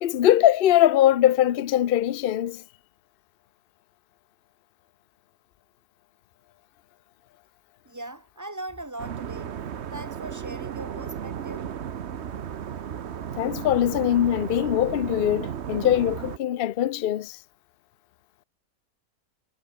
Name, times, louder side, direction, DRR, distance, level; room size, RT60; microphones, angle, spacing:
voice 1, 0.0-2.6 13.4-17.4, left 12 dB, 55° left, 0.6 m, -22 dB
voice 2, 7.8-9.5 9.9-11.7, right 2 dB, 10° right, 2.6 m, -39 dB
sound 1, 9.0-16.4, right 8 dB, 50° right, 1.1 m, -34 dB
omnidirectional pair, 1.7 m